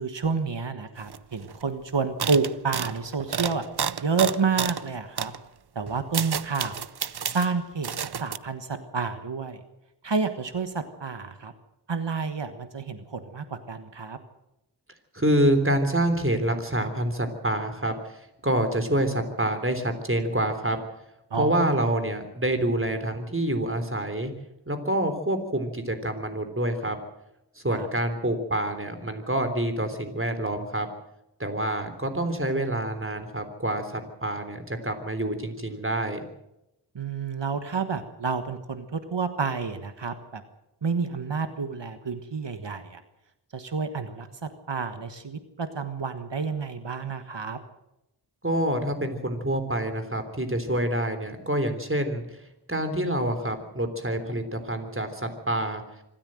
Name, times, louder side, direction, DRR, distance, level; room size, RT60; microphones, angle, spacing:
voice 1, 0.0-3.6 4.0-5.3 5.7-6.8 7.3-7.9 8.2-9.6 10.0-11.5 11.9-14.2 21.3-21.9 27.7-27.9 36.9-40.4 40.8-43.0 43.5-47.6, right 5 dB, 85° right, 8 dB, 1.4 m, -29 dB
sound 1, 1.1-1.2 1.4-1.7 2.2-4.8 5.2-5.4 5.9-7.5 7.8-8.4, right 7 dB, 65° right, 0.7 m, -31 dB
voice 2, 15.1-17.9 18.4-20.8 21.3-24.3 24.7-27.0 27.6-30.9 31.4-36.2 48.4-52.2 52.7-55.8, right 1 dB, 30° right, 8 dB, 3.6 m, -27 dB
25.5 x 13.5 x 7.7 m, 0.90 s
wide cardioid pair, 50°, 42 cm